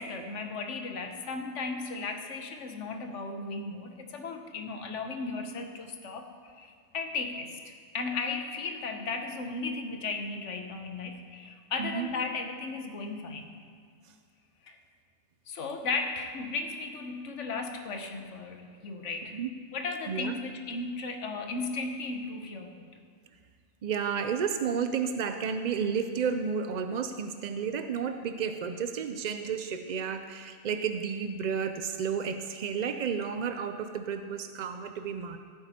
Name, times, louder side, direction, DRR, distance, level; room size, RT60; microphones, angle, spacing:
voice 1, 0.0-13.6 14.6-14.8 15.5-19.4 19.7-22.9, left 3 dB, 65° left, 5 dB, 1.3 m, -36 dB
voice 2, 11.8-12.1 19.3-19.5 20.1-20.4 23.8-35.4, right 6 dB, 70° right, 8 dB, 0.4 m, -32 dB
15.5 x 8.7 x 4.2 m, 2.2 s
omnidirectional pair, 1.3 m